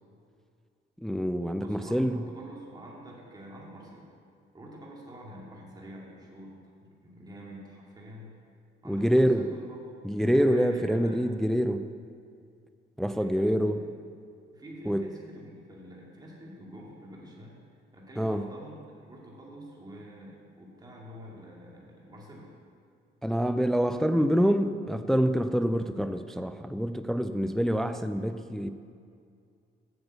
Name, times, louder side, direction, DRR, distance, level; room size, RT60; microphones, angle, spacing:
voice 1, 1.0-2.2 8.9-9.5 10.0-11.9 13.0-13.8 14.9-15.1 18.2-18.5 23.2-28.7, equal, ahead, 10 dB, 0.4 m, -26 dB
voice 2, 1.6-4.1 4.5-6.5 6.8-8.3 8.8-11.3 13.2-13.8 14.5-17.5 17.9-18.8 19.0-22.5, equal, 20° right, -4 dB, 2.3 m, -46 dB
8.0 x 7.0 x 7.9 m, 2.3 s
cardioid pair, 90°, 20 cm